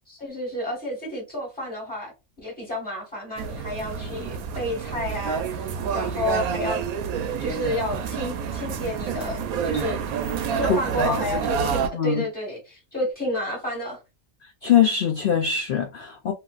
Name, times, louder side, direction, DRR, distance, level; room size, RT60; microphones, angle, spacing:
voice 1, 0.1-2.1 2.4-6.8 7.3-10.0 10.5-14.0, left 1 dB, 5° left, 1.3 m, -31 dB
sound 1, 3.4-11.9, right 7 dB, 90° right, 1.0 m, -28 dB
voice 2, 10.7-11.2 11.6-12.2 14.6-16.3, left 7 dB, 75° left, 0.5 m, -23 dB
3.1 x 2.8 x 2.4 m
omnidirectional pair, 1.4 m